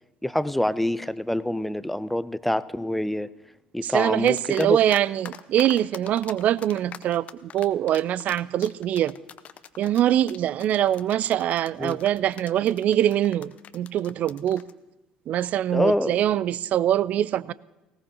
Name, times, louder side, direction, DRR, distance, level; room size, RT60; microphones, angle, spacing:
voice 1, 0.2-3.3 3.7-4.8 11.8-12.0 15.7-16.2, left 1 dB, 5° left, 0.6 m, -26 dB
voice 2, 3.8-9.1 9.8-14.6 15.3-17.5, right 11 dB, 50° right, 0.4 m, -23 dB
sound 1, 4.3-5.0 5.3-14.7, left 9 dB, 45° left, 0.8 m, -42 dB
19.0 x 18.0 x 2.8 m
figure-of-eight pair, 60°, 3 cm